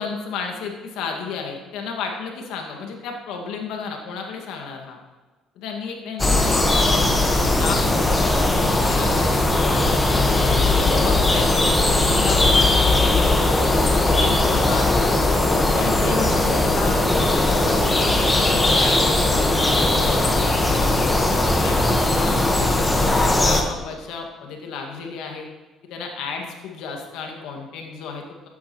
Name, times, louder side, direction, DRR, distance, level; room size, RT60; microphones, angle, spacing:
voice 1, 0.0-5.0 5.6-11.5 12.1-13.4 13.7-15.0 15.7-20.9 21.5-25.5 25.8-28.5, left 5 dB, 80° left, 2 dB, 1.9 m, -33 dB
sound 1, 6.2-23.6, left 2 dB, 15° left, 1.4 m, -19 dB
12.5 x 9.3 x 3.1 m, 1.3 s
cardioid pair, 90°, 0 cm